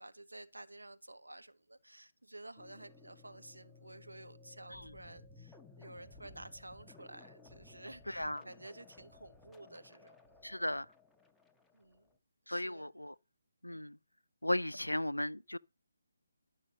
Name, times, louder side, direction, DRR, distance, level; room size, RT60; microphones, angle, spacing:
voice 1, 0.0-10.1 11.7-12.1 12.5-12.9, right 1 dB, 75° right, 1.5 m, -52 dB
sound 1, 2.6-12.2, left 3 dB, 5° left, 0.8 m, -58 dB
voice 2, 8.1-8.4 10.4-10.9 12.5-13.2 13.6-14.0 14.4-15.6, left 1 dB, 80° left, 0.5 m, -36 dB
12.0 x 6.4 x 7.3 m
figure-of-eight pair, 145°, 0 cm